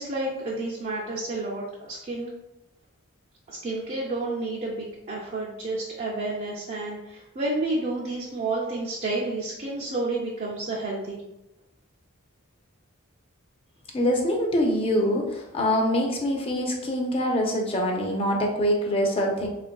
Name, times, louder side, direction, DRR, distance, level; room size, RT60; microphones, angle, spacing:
voice 1, 0.0-2.3 3.5-11.2, right 2 dB, 35° right, -4 dB, 0.4 m, -30 dB
voice 2, 13.9-19.5, equal, 25° left, 1 dB, 0.4 m, -24 dB
3.5 x 2.5 x 2.2 m, 0.92 s
head